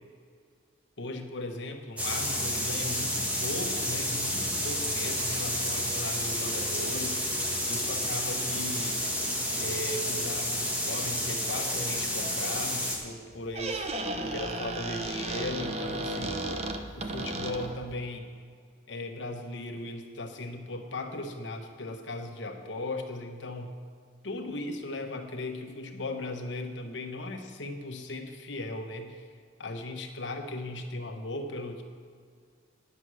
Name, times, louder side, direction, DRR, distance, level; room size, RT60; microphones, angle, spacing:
voice 1, 1.0-9.0 9.5-13.9 14.3-16.4 16.9-18.3 18.9-23.7 24.2-29.3 29.6-31.8, left 2 dB, 85° left, 4 dB, 1.1 m, -37 dB
sound 1, 2.0-13.0, equal, 5° right, 1.4 m, -30 dB
Squeak, 13.3-17.9, right 2 dB, 35° right, 0.6 m, -34 dB
9.8 x 6.8 x 6.2 m, 2.1 s
head